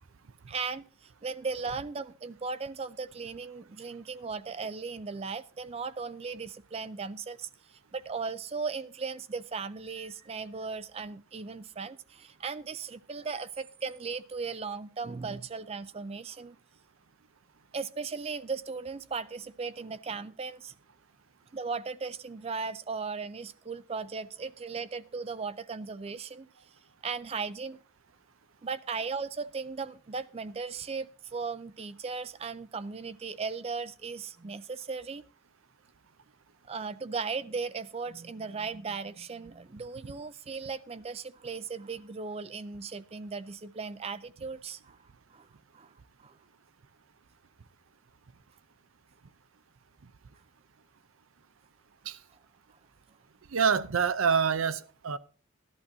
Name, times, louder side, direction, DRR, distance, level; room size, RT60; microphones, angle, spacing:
voice 1, 0.5-16.6 17.7-20.7 21.5-26.5 27.0-27.8 28.6-35.2 36.7-45.0 45.3-45.5 45.7-45.9 46.2-46.3, right 4 dB, 30° right, 0.4 m, -37 dB
voice 2, 53.5-55.2, right 6 dB, 75° right, 0.6 m, -26 dB
14.5 x 11.0 x 2.7 m
head